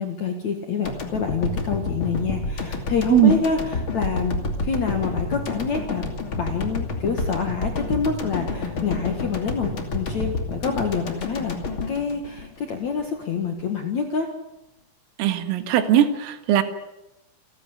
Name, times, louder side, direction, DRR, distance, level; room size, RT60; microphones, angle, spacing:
voice 1, 0.0-4.3 4.6-6.0 6.3-11.6 11.9-14.3, left 5 dB, 55° left, 4 dB, 2.1 m, -27 dB
sound 1, 0.8-13.1, left 3 dB, 35° left, 2.3 m, -29 dB
voice 2, 15.2-16.6, right 10 dB, 90° right, 8 dB, 4.3 m, -19 dB
29.0 x 13.0 x 9.8 m, 0.92 s
omnidirectional pair, 5.8 m